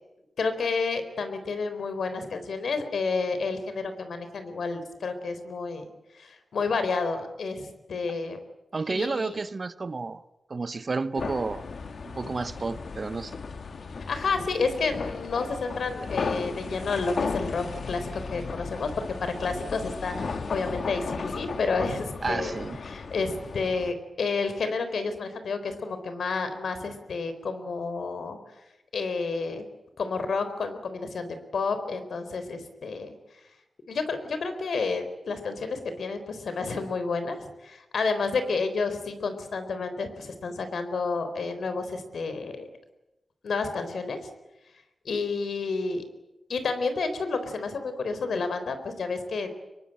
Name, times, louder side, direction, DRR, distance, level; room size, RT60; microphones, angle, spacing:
voice 1, 0.4-5.9 6.2-8.4 8.9-9.4 13.9-18.9 19.2-22.5 22.9-28.4 28.9-29.6 30.0-33.1 33.9-42.7 43.4-44.3 45.0-46.0 46.5-49.5, left 4 dB, 80° left, 3.9 m, -30 dB
voice 2, 8.7-10.2 10.5-11.7 12.0-13.4 22.2-22.8, right 3 dB, 40° right, 1.0 m, -31 dB
sound 1, 11.2-23.9, left 4 dB, 65° left, 1.8 m, -35 dB
25.5 x 22.5 x 9.0 m
wide cardioid pair, 130°, 0 cm